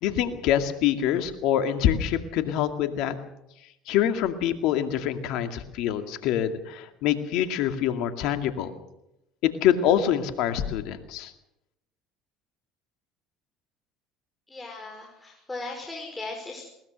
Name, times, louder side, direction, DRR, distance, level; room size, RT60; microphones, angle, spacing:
voice 1, 0.0-3.2 3.9-8.7 9.4-11.3, left 10 dB, 70° left, 7 dB, 2.2 m, -25 dB
voice 2, 14.5-16.6, left 3 dB, 15° left, 0 dB, 5.3 m, -37 dB
21.0 x 19.5 x 6.5 m, 0.86 s
hypercardioid pair, 75°, 0 cm